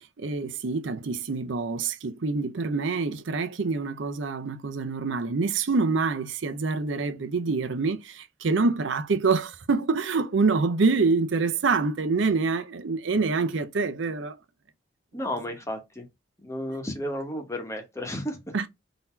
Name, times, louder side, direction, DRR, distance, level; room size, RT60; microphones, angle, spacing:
voice 1, 0.2-14.3 18.5-18.6, right 4 dB, 75° right, 0.6 m, -26 dB
voice 2, 15.1-16.0 16.4-18.5, left 1 dB, 15° left, 1.0 m, -33 dB
3.9 x 2.7 x 4.3 m
head